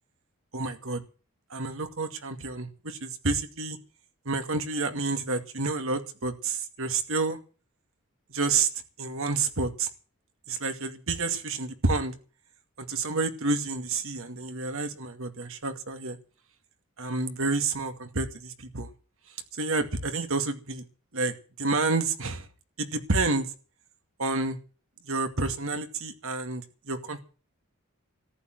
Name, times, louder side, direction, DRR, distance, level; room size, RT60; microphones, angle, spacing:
voice 1, 0.5-1.0 1.5-3.8 4.3-7.4 8.3-8.7 9.0-9.9 10.5-12.1 12.8-16.2 17.0-18.9 19.6-20.8 21.1-22.5 22.8-23.5 24.2-24.6 25.0-27.2, right 3 dB, 70° right, 7 dB, 2.3 m, -29 dB
14.0 x 11.5 x 7.8 m, 0.37 s
head